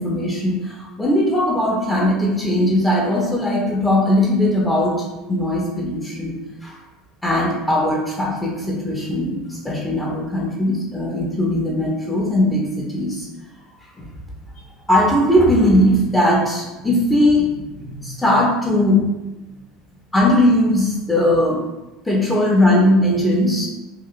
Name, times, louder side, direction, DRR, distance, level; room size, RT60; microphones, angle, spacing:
voice 1, 0.0-6.8 7.2-13.3 14.0-14.1 14.9-19.0 20.1-21.6 22.0-23.7, left 1 dB, 10° left, -3 dB, 0.5 m, -19 dB
2.8 x 2.3 x 2.4 m, 1.0 s
figure-of-eight pair, 70°, 0 cm